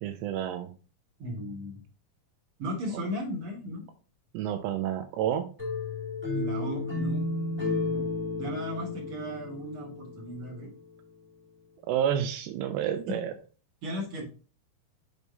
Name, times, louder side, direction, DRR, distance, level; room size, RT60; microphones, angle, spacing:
voice 1, 0.0-0.7 4.3-5.5 11.9-13.3, right 10 dB, 80° right, 6 dB, 2.9 m, -29 dB
voice 2, 1.2-1.8 2.6-3.8 6.3-7.2 7.9-8.0 8.3-10.7 13.1-13.2 13.8-14.3, equal, 35° right, -2 dB, 3.1 m, -36 dB
sound 1, 5.6-10.5, left 3 dB, 5° right, 2.0 m, -32 dB
7.3 x 4.7 x 4.0 m, 0.36 s
omnidirectional pair, 5.0 m